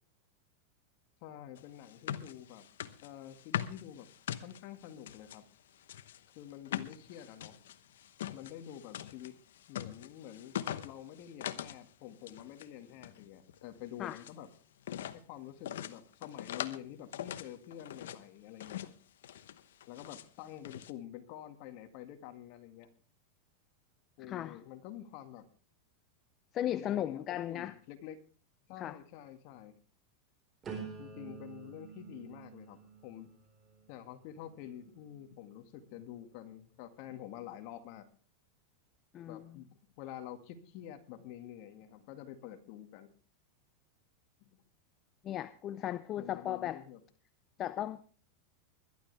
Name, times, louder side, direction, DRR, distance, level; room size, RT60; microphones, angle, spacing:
voice 1, 1.2-2.7 3.0-4.1 4.4-5.4 6.3-7.6 8.3-9.3 9.7-10.6 10.8-14.5 15.1-18.9 19.9-22.9 24.2-25.5 26.7-28.2 28.7-29.8 31.0-33.3 33.9-38.1 39.3-43.1 44.4-44.6 46.2-47.0, left 11 dB, 55° left, 1.9 m, -48 dB
sound 1, 1.6-5.4 5.8-11.8 12.1-12.7 13.0-14.4 14.8-15.2 15.7-16.8 17.1-18.2 18.6-19.0 19.2-20.3 20.6-20.9, left 11 dB, 85° left, 0.9 m, -42 dB
voice 2, 24.3-24.6 26.5-27.7 28.8-29.0 39.1-39.6 45.2-46.8 47.6-48.0, left 12 dB, 35° left, 0.6 m, -36 dB
sound 2, 30.6-36.5 37.0-37.5, right 6 dB, 25° right, 4.4 m, -50 dB
21.0 x 12.0 x 3.4 m
supercardioid pair, 125°, 0 cm